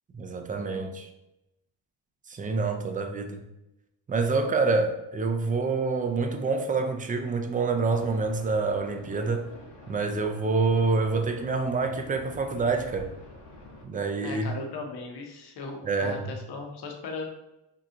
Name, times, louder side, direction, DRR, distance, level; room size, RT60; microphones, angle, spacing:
voice 1, 0.1-1.1 2.3-3.4 4.1-9.5 9.9-13.1 13.8-14.5 15.8-16.2, right 4 dB, 20° right, 0.3 m, -27 dB
sound 1, 7.8-13.8, left 1 dB, 90° left, 1.0 m, -47 dB
voice 2, 14.2-17.3, left 3 dB, 50° left, 0.8 m, -38 dB
2.8 x 2.3 x 3.6 m
cardioid pair, 75°, 49 cm